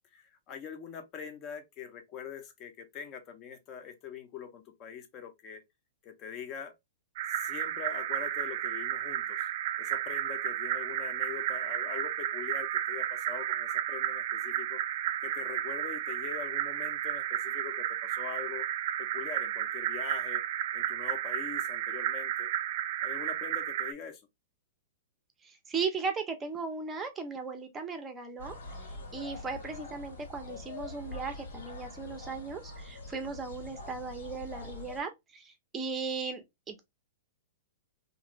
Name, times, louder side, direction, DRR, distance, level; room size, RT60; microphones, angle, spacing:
voice 1, 0.1-5.6 6.0-6.8 7.3-9.5 9.8-14.8 15.2-18.7 19.0-20.4 20.7-22.5 23.0-24.3, left 7 dB, 30° left, 0.7 m, -43 dB
sound 1, 7.2-23.9, right 12 dB, 50° right, 0.3 m, -33 dB
voice 2, 25.4-28.6 29.1-36.8, right 5 dB, 15° right, 0.6 m, -37 dB
sound 2, 28.4-35.0, left 2 dB, 85° left, 1.5 m, -44 dB
3.0 x 2.6 x 2.9 m
hypercardioid pair, 160°, 0 cm